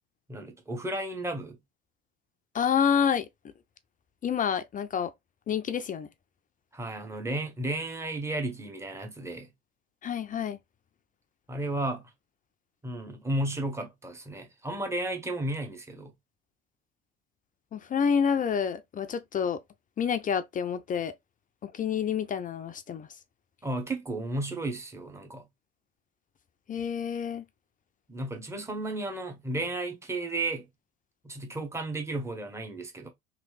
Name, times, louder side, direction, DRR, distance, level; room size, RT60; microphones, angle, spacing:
voice 1, 0.3-1.6 6.7-9.5 11.5-12.1 12.8-16.1 23.6-25.5 28.1-30.7 31.2-33.1, right 2 dB, 10° right, 0.9 m, -33 dB
voice 2, 2.5-3.3 4.2-5.1 5.5-6.1 10.0-10.6 17.7-19.6 20.0-21.1 21.6-23.1 26.7-27.4, left 7 dB, 25° left, 0.4 m, -28 dB
3.0 x 2.6 x 3.2 m
hypercardioid pair, 65°, 32 cm